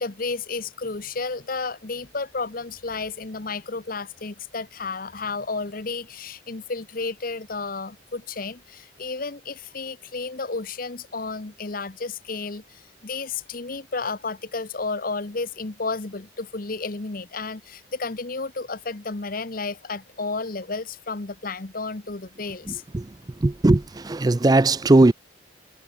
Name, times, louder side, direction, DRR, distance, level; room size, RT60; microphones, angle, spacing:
voice 1, 0.0-22.8, left 3 dB, 45° left, 1.0 m, -32 dB
voice 2, 23.4-25.1, right 2 dB, 20° right, 0.4 m, -18 dB
head